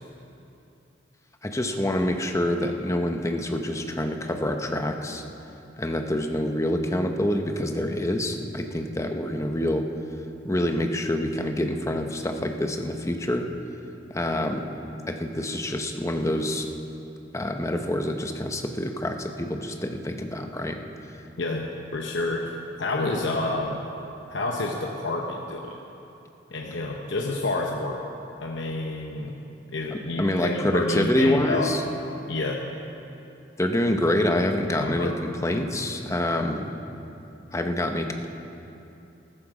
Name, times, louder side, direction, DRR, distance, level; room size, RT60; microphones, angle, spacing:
voice 1, 1.4-5.2 5.8-9.8 10.4-13.5 14.1-14.7 15.1-16.7 17.3-20.8 30.2-31.8 33.6-35.1 35.4-36.7 37.5-38.3, left 1 dB, 15° left, 5 dB, 0.8 m, -26 dB
voice 2, 21.4-23.8 24.3-25.8 26.5-28.0 28.4-29.4 29.7-31.7 32.3-32.6 34.8-35.2, left 2 dB, 75° left, 1 dB, 0.9 m, -29 dB
14.0 x 13.5 x 4.9 m, 2.8 s
head